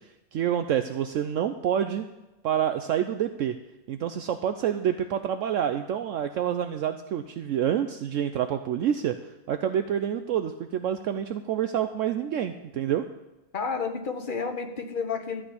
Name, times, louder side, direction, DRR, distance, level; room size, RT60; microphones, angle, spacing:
voice 1, 0.3-2.1 2.4-3.6 3.9-9.1 9.5-13.0, right 9 dB, 70° right, 8 dB, 0.9 m, -27 dB
voice 2, 13.5-15.4, left 5 dB, 40° left, 6 dB, 1.1 m, -31 dB
13.0 x 6.1 x 8.3 m, 1.0 s
omnidirectional pair, 1.5 m